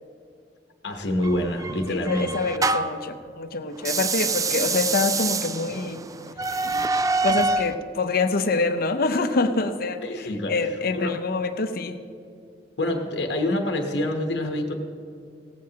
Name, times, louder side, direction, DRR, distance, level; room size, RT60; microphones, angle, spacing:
voice 1, 0.8-2.3 10.0-10.6 10.9-11.1 12.8-14.8, left 1 dB, 70° left, 4 dB, 1.0 m, -26 dB
sound 1, 1.2-3.1 3.8-7.7, right 3 dB, 20° right, 0.4 m, -26 dB
voice 2, 1.9-6.0 6.6-6.9 7.2-10.0 10.5-12.0, left 3 dB, 55° left, 10 dB, 0.7 m, -25 dB
17.5 x 15.0 x 2.9 m, 2.4 s
head